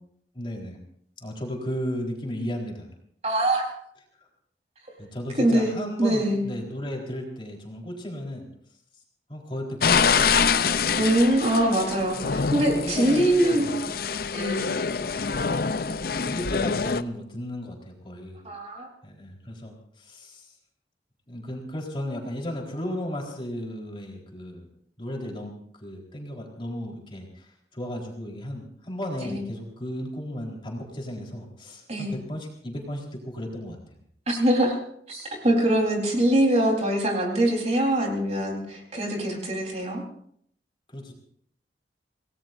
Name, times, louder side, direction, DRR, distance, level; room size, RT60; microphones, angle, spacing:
voice 1, 0.3-0.8 1.2-2.9 5.0-8.4 9.3-11.0 12.1-13.7 15.5-15.8 16.2-18.4 19.0-20.5 21.3-24.7 25.0-33.8 40.9-41.1, equal, 30° left, -1 dB, 4.1 m, -35 dB
voice 2, 3.2-3.7 5.4-6.4 10.9-13.8 14.3-14.7 18.4-18.9 29.2-29.4 31.9-32.1 34.3-34.8 35.1-40.0, right 1 dB, 40° right, 0 dB, 4.1 m, -23 dB
sound 1, 9.8-17.0, left 6 dB, 55° left, 0.6 m, -25 dB
27.0 x 18.5 x 2.7 m, 0.67 s
head